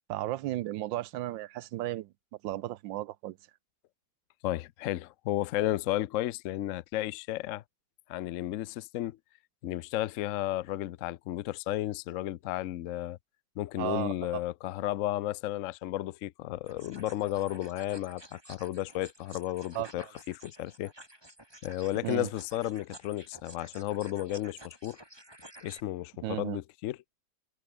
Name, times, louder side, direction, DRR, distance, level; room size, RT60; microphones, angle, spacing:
voice 1, 0.1-2.1 2.4-3.4 13.8-14.4 19.7-20.1 22.0-22.3 26.2-26.6, right 15 dB, 90° right, 1.4 m, -34 dB
voice 2, 4.4-7.6 8.1-9.2 9.6-13.2 13.6-20.9 21.6-25.0 25.6-27.0, left 14 dB, 75° left, 0.7 m, -33 dB
sound 1, 16.7-25.8, right 1 dB, 15° right, 4.6 m, -52 dB
omnidirectional pair, 2.0 m